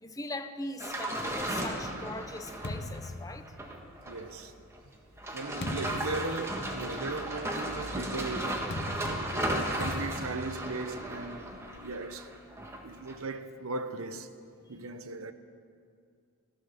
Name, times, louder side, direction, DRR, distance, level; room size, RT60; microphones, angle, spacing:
voice 1, 0.0-3.5 5.3-5.4, left 1 dB, 15° left, 0.7 m, -40 dB
sound 1, 0.8-4.4 4.7-4.8 5.2-12.8 13.1-13.2, right 1 dB, 15° right, 1.5 m, -35 dB
sound 2, 1.7-4.1 4.8-11.9, left 2 dB, 55° left, 0.9 m, -42 dB
voice 2, 4.1-4.5 5.3-8.7 9.0-12.3 12.7-14.3 14.7-15.3, right 3 dB, 90° right, 0.9 m, -38 dB
15.5 x 13.0 x 6.8 m
head